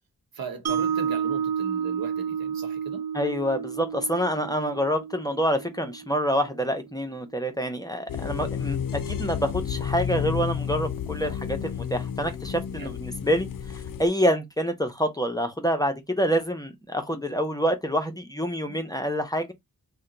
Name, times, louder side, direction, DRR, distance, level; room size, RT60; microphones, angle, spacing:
voice 1, 0.3-3.1 11.2-11.4 12.8-12.9 18.7-18.8, right 5 dB, 75° right, 0.9 m, -38 dB
Mallet percussion, 0.7-6.8, right 7 dB, 45° right, 0.6 m, -31 dB
voice 2, 3.1-13.5 14.0-19.5, equal, 10° left, 0.6 m, -27 dB
sound 1, 8.1-14.1, left 8 dB, 65° left, 0.5 m, -31 dB
2.8 x 2.2 x 3.7 m
wide cardioid pair, 70°, 35 cm